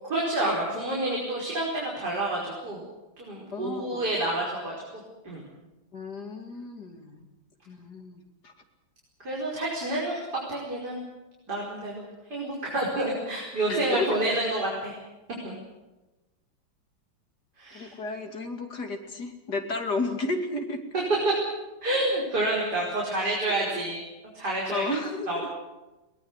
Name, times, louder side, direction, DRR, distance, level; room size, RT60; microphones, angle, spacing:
voice 1, 0.1-2.8 3.2-4.7 5.2-5.4 9.2-10.2 10.5-11.0 11.5-15.0 15.4-15.5 17.6-17.9 20.9-21.3 21.8-24.0 24.3-24.8 25.3-25.4, right 1 dB, 50° right, -4 dB, 5.7 m, -28 dB
voice 2, 3.5-4.1 5.9-7.2 7.7-8.5 13.7-14.1 17.7-20.8 23.2-23.8 24.7-25.5, left 2 dB, 50° left, 4 dB, 3.2 m, -33 dB
22.0 x 20.0 x 8.2 m, 1.1 s
omnidirectional pair, 2.2 m